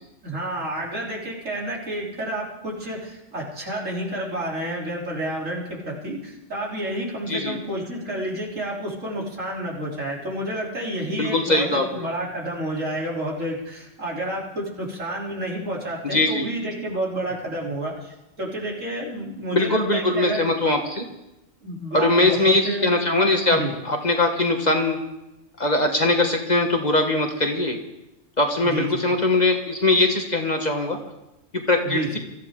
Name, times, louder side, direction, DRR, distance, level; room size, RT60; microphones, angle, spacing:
voice 1, 0.2-20.5 21.6-22.9 23.5-23.7 28.6-29.0 31.8-32.2, right 1 dB, 75° right, -4 dB, 3.8 m, -30 dB
voice 2, 11.2-12.1 16.0-16.5 19.5-21.0 21.9-25.0 25.6-27.8 28.4-31.0 31.5-32.2, left 2 dB, 35° left, 3 dB, 1.4 m, -21 dB
23.0 x 14.0 x 3.7 m, 0.94 s
omnidirectional pair, 1.3 m